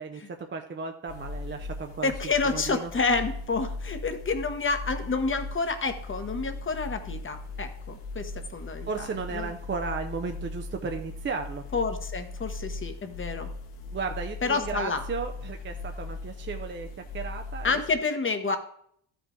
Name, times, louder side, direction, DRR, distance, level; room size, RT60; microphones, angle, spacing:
voice 1, 0.0-2.1 2.4-2.9 8.9-11.7 13.9-16.9 17.1-17.8, right 4 dB, 25° right, 5 dB, 0.6 m, -34 dB
sound 1, 1.1-17.9, left 3 dB, 85° left, 1.5 m, -38 dB
voice 2, 2.0-9.1 9.3-9.5 11.7-13.5 14.4-15.0 17.6-18.6, left 4 dB, 25° left, 7 dB, 1.1 m, -29 dB
13.0 x 5.2 x 3.8 m, 0.65 s
cardioid pair, 105°, 49 cm